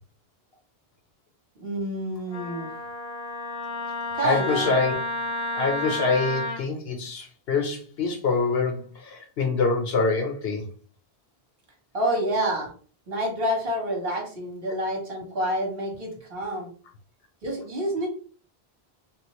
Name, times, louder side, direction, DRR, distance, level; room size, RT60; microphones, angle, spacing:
voice 1, 1.6-2.7 4.1-4.7 11.9-12.7 13.1-16.7 17.4-18.1, right 1 dB, 65° right, -1 dB, 1.4 m, -28 dB
Wind instrument woodwind instrument, 2.3-6.6, left 2 dB, 45° left, 0.8 m, -31 dB
voice 2, 4.2-5.0 5.6-10.7, left 4 dB, 75° left, 4 dB, 1.0 m, -25 dB
3.6 x 2.6 x 3.0 m, 0.41 s
omnidirectional pair, 1.0 m